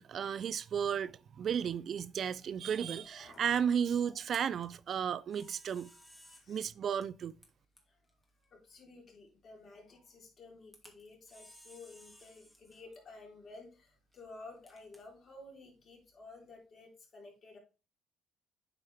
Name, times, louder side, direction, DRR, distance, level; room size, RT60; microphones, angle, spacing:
voice 1, 0.0-5.9 6.5-7.3, right 8 dB, 55° right, 0.4 m, -34 dB
Camera, 1.2-16.6, equal, ahead, 2.6 m, -63 dB
voice 2, 2.6-3.7 4.0-4.2 6.4-6.7 8.5-17.6, left 3 dB, 45° left, 3.7 m, -53 dB
8.7 x 4.8 x 3.5 m
supercardioid pair, 65°, 0 cm